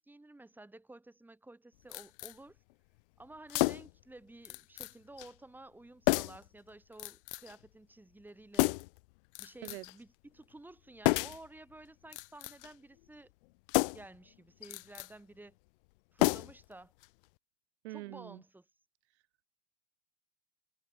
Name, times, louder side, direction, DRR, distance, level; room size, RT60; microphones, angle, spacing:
voice 1, 0.0-2.6 3.2-8.8 9.4-13.3 13.9-15.6 16.1-16.9 17.9-18.7, right 2 dB, 5° right, 5.7 m, -53 dB
sound 1, 1.9-2.4 3.5-4.0 4.5-4.9 5.2-5.3 6.1-6.5 7.0-7.6 8.5-9.0 9.4-10.0 11.0-11.5 12.1-12.7 13.7-14.2 14.6-15.1 16.2-16.7 17.0-17.1, left 24 dB, 50° left, 0.4 m, -31 dB
voice 2, 17.8-18.4, right 19 dB, 65° right, 0.8 m, -44 dB
supercardioid pair, 130°, 36 cm